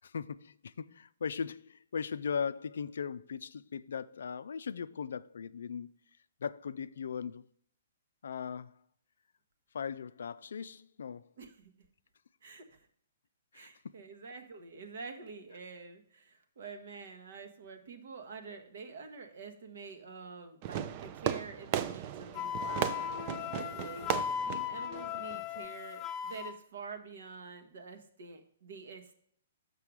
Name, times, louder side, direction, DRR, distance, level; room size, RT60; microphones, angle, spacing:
voice 1, 0.0-5.9 6.4-7.5 8.2-8.8 9.7-11.3 13.5-13.7, left 6 dB, 70° left, 0.3 m, -38 dB
voice 2, 11.4-11.7 12.4-12.8 13.5-24.1 24.4-29.2, right 4 dB, 60° right, 1.2 m, -47 dB
Fireworks, 20.6-25.7, right 10 dB, 35° right, 0.5 m, -36 dB
Wind instrument woodwind instrument, 22.3-26.5, left 8 dB, 25° left, 0.7 m, -37 dB
6.8 x 5.8 x 4.7 m
figure-of-eight pair, 125°, 0 cm